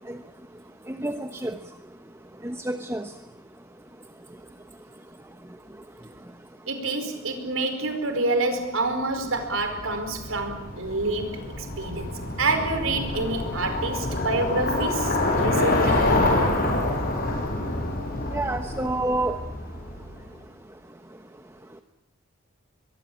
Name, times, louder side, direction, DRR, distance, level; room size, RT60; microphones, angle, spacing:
voice 1, 1.0-1.6 2.4-3.1 18.3-19.4, right 2 dB, 15° right, 1.1 m, -28 dB
voice 2, 6.7-16.1, right 2 dB, 70° right, 4.9 m, -28 dB
Bicycle, 9.3-20.2, left 2 dB, 45° left, 7.3 m, -27 dB
24.0 x 22.0 x 8.8 m
head